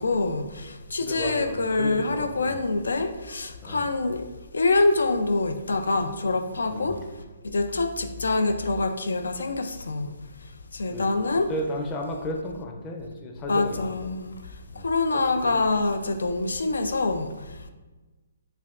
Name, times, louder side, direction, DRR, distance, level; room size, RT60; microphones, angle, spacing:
voice 1, 0.0-4.3 4.5-7.0 7.4-10.1 10.7-11.5 13.5-14.4 14.8-17.7, left 3 dB, 90° left, 0.4 m, -25 dB
voice 2, 1.0-2.6 3.6-3.9 6.7-7.0 10.9-11.1 11.5-13.8 14.7-15.6, left 1 dB, 20° left, 0.5 m, -34 dB
5.5 x 2.3 x 2.4 m
hypercardioid pair, 155°, 0 cm